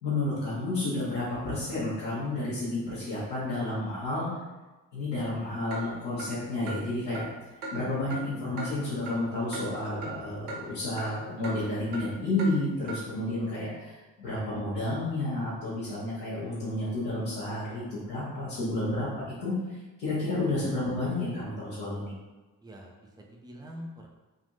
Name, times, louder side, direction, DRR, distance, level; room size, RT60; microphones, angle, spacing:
voice 1, 0.0-4.3 4.9-7.2 7.7-19.5 20.0-22.1, left 2 dB, 75° left, -11 dB, 1.0 m, -31 dB
Clock, 5.7-5.8 6.2-6.3 6.7-6.8 7.1-7.3 7.6-7.7 8.1-8.2 8.6-8.7 9.1-9.2 9.5-9.7 10.0-10.1 10.5-10.6 11.0-11.1 11.4-11.6 11.9-12.0 12.4-12.5 12.9-13.0, right 3 dB, 70° right, 0.7 m, -37 dB
voice 2, 10.6-11.0 22.6-24.1, equal, 10° right, 0 dB, 0.4 m, -45 dB
3.7 x 2.5 x 2.6 m, 1.2 s
figure-of-eight pair, 40°, 49 cm